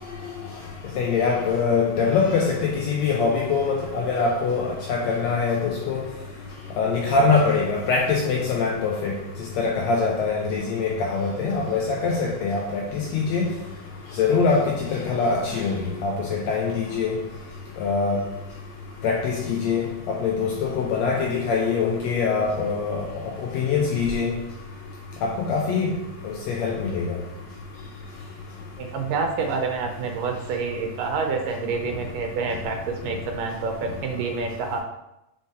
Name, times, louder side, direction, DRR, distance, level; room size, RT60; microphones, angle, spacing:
voice 1, 1.0-6.0 6.8-9.1 9.6-13.4 14.2-17.2 17.8-18.2 19.0-23.0 23.5-24.3 25.2-25.9 26.2-27.2, left 4 dB, 85° left, -1 dB, 1.5 m, -23 dB
voice 2, 28.8-34.8, right 4 dB, 80° right, 3 dB, 2.3 m, -28 dB
6.0 x 4.2 x 4.0 m, 0.89 s
omnidirectional pair, 3.8 m